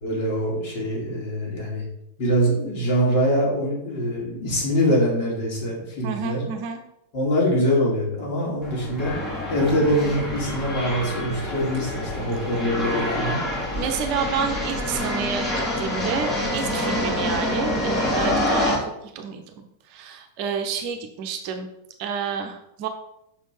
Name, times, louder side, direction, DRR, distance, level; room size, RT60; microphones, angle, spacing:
voice 1, 0.0-1.8 2.2-6.4 7.1-9.1 9.5-13.4, equal, 50° left, -3 dB, 2.7 m, -23 dB
voice 2, 6.0-6.8 11.9-12.3 13.8-19.4 19.9-21.7 22.0-22.9, right 6 dB, 45° right, 5 dB, 0.8 m, -30 dB
sound 1, 8.6-18.8, left 1 dB, 20° left, 1.9 m, -27 dB
5.8 x 4.4 x 4.6 m, 0.81 s
figure-of-eight pair, 90°, 0 cm